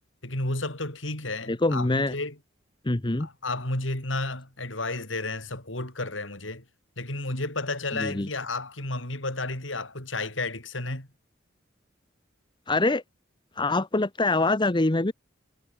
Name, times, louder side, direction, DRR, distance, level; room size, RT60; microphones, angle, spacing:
voice 1, 0.2-2.4 3.2-6.6 7.0-11.1, left 2 dB, 80° left, 7.4 m, -32 dB
voice 2, 1.5-2.1 2.8-3.3 7.9-8.3 12.7-13.0 13.6-15.1, left 2 dB, 25° left, 1.0 m, -24 dB
head